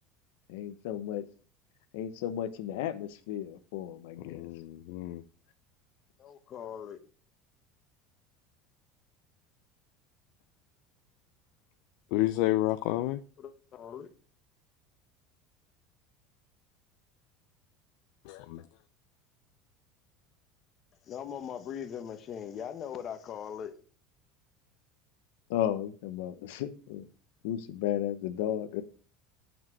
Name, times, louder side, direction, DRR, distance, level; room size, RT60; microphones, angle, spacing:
voice 1, 0.5-1.2 1.9-4.5 25.5-27.1 27.4-28.8, left 11 dB, 85° left, 0.9 m, -34 dB
voice 2, 4.3-5.2 12.1-13.2 18.3-18.6, left 16 dB, 65° left, 0.5 m, -30 dB
voice 3, 6.2-7.0 13.4-14.1 21.1-23.7, left 8 dB, 35° left, 1.0 m, -40 dB
7.4 x 6.1 x 6.1 m
cardioid pair, 160°, 0 cm